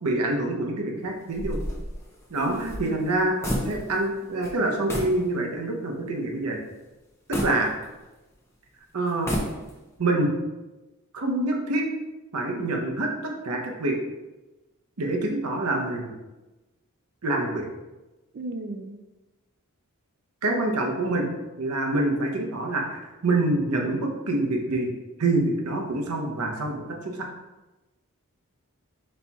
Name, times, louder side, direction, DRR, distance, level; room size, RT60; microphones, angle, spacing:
voice 1, 0.0-1.6 2.3-3.4 3.6-6.6 7.3-7.7 8.9-9.3 10.0-10.3 11.1-11.8 12.3-14.0 15.0-16.1 17.2-17.7 20.4-21.3 21.6-24.9 25.2-27.2, right 2 dB, 85° right, 1 dB, 0.7 m, -26 dB
sound 1, 1.3-4.1 4.4-4.6 4.9-5.2 5.7-5.8 7.3-8.3 9.1-9.9, equal, 10° left, 0.5 m, -31 dB
voice 2, 2.4-3.0 18.3-19.0, right 2 dB, 50° right, 6 dB, 0.4 m, -35 dB
4.3 x 4.2 x 2.3 m, 1.1 s
head